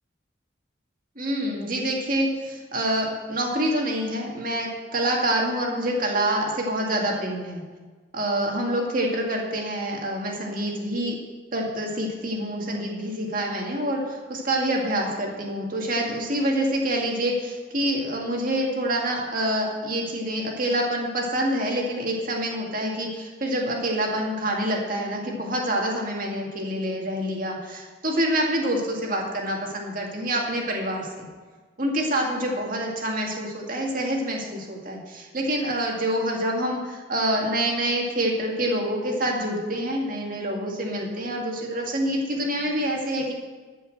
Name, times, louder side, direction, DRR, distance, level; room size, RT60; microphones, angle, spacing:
voice 1, 1.2-7.6 8.1-11.2 11.5-31.3 31.8-43.3, right 1 dB, 45° right, 0 dB, 2.0 m, -26 dB
13.5 x 5.7 x 7.7 m, 1.4 s
head